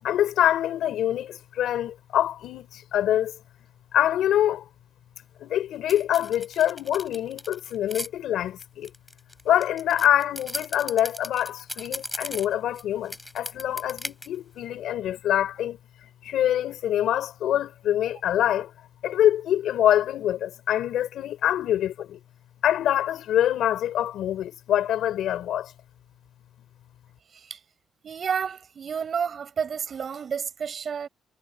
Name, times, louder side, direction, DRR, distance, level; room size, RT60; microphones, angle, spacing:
voice 1, 0.0-3.3 3.9-4.6 5.4-8.9 9.5-15.8 16.2-18.7 19.0-22.2 22.6-25.7, left 11 dB, 75° left, 4.3 m, -25 dB
sound 1, 5.9-8.1 8.6-12.8 13.1-14.3, left 1 dB, 10° left, 4.9 m, -37 dB
voice 2, 28.0-31.1, right 7 dB, 50° right, 5.6 m, -30 dB
cardioid pair, 90°, 0 cm